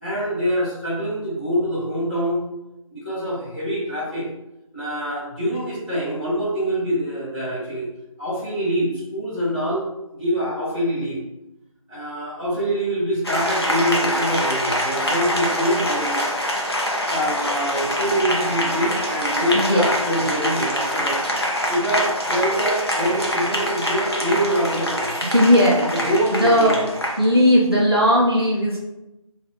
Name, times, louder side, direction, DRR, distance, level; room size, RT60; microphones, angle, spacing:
voice 1, 0.0-2.4 2.9-4.3 4.7-7.9 8.2-9.8 10.1-11.2 11.9-16.2 17.1-21.2 21.7-25.1 26.0-26.8, equal, 15° left, -15 dB, 1.5 m, -25 dB
Applause, 13.2-27.3, equal, 45° left, 0.8 m, -24 dB
voice 2, 19.5-19.9 25.2-25.9 26.3-26.8 27.2-28.8, equal, 45° right, -5 dB, 0.9 m, -17 dB
3.5 x 2.7 x 3.7 m, 0.91 s
figure-of-eight pair, 175°, 18 cm